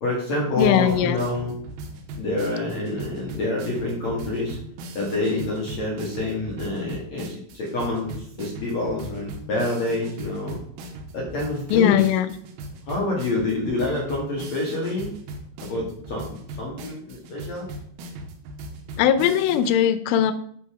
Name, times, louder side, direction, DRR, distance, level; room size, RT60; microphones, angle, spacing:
voice 1, 0.0-1.5 2.2-4.6 4.9-10.6 11.1-12.0 12.9-15.1 15.6-17.7, left 2 dB, 50° left, -3 dB, 2.2 m, -27 dB
voice 2, 0.6-1.2 11.7-12.3 19.0-20.3, left 10 dB, 80° left, 9 dB, 3.2 m, -19 dB
sound 1, 0.6-19.8, right 1 dB, 85° right, 3.8 m, -39 dB
12.0 x 4.2 x 5.0 m, 0.63 s
omnidirectional pair, 5.9 m